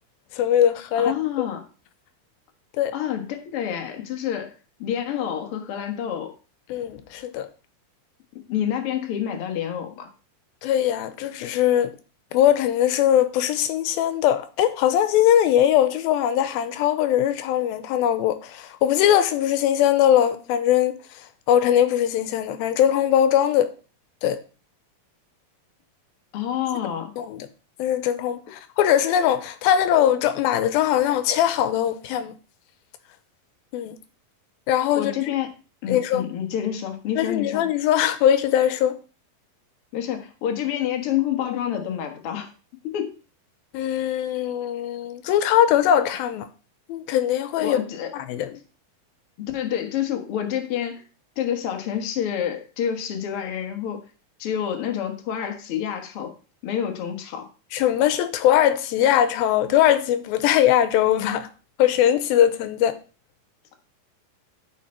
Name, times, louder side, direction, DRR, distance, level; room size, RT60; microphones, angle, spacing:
voice 1, 0.3-1.5 2.8-2.9 6.7-7.5 10.6-11.9 12.3-23.7 24.2-24.4 27.2-27.5 27.8-32.4 33.7-34.0 34.7-35.1 35.9-36.3 37.2-39.0 43.7-46.5 46.9-47.8 48.1-48.6 57.7-61.5 61.8-63.0, left 10 dB, 90° left, 2.6 m, -21 dB
voice 2, 1.0-1.6 2.9-4.5 4.8-6.3 8.5-10.1 26.3-27.1 34.9-35.5 35.8-37.7 39.9-42.5 42.8-43.1 47.6-48.1 49.4-51.0 51.4-54.0 54.4-56.3 56.6-57.5, left 10 dB, 60° left, 1.6 m, -28 dB
12.0 x 5.0 x 4.3 m
omnidirectional pair, 4.2 m